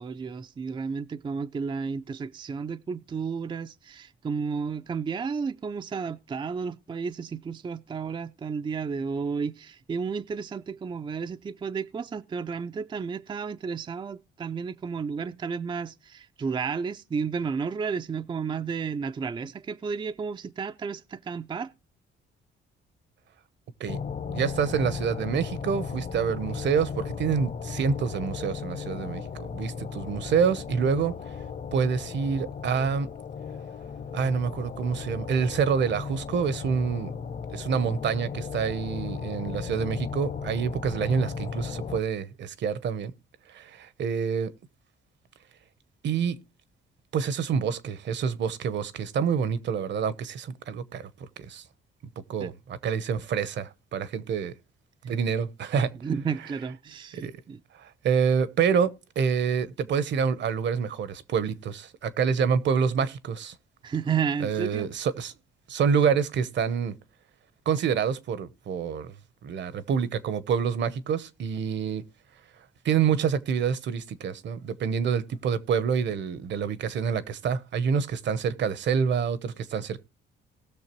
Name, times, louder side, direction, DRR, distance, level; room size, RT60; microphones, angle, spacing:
voice 1, 0.0-21.7 52.4-52.5 56.0-57.6 63.8-64.9, right 5 dB, 25° right, 0.4 m, -32 dB
sound 1, 23.9-42.0, left 6 dB, 45° left, 1.0 m, -36 dB
voice 2, 24.3-31.1 31.7-33.1 34.1-37.1 37.5-43.1 43.5-44.5 46.0-46.4 47.1-51.6 52.3-54.5 55.0-55.9 57.1-57.3 57.7-63.6 64.4-65.3 65.7-67.0 67.7-69.1 69.4-72.1 72.8-80.0, right 6 dB, 65° right, 0.9 m, -27 dB
19.0 x 6.4 x 3.0 m
cardioid pair, 90°, 20 cm